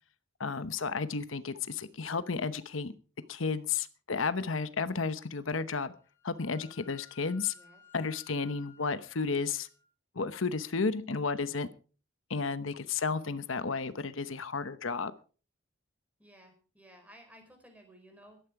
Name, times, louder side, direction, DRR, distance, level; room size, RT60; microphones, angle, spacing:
voice 1, 0.4-2.9 3.3-5.9 6.2-7.5 7.9-9.7 10.1-11.7 12.3-15.1, left 4 dB, 90° left, 13 dB, 1.0 m, -32 dB
Wind instrument woodwind instrument, 5.7-9.8, left 10 dB, 15° left, 2.6 m, -59 dB
voice 2, 7.5-7.8 16.2-18.4, equal, 5° right, 4 dB, 4.6 m, -56 dB
16.5 x 13.0 x 4.8 m, 0.39 s
head